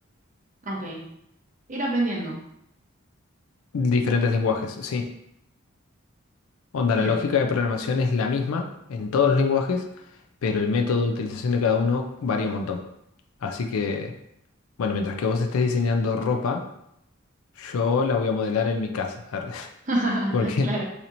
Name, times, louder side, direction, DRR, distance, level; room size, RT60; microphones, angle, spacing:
voice 1, 0.6-1.0 1.7-2.4 7.0-7.2 19.9-20.8, right 1 dB, 35° right, -2 dB, 0.8 m, -27 dB
voice 2, 3.7-5.1 6.7-9.9 10.4-12.8 13.4-14.1 14.8-16.6 17.6-19.7 20.3-20.7, left 4 dB, 85° left, 3 dB, 0.4 m, -24 dB
4.2 x 2.8 x 2.6 m, 0.77 s
head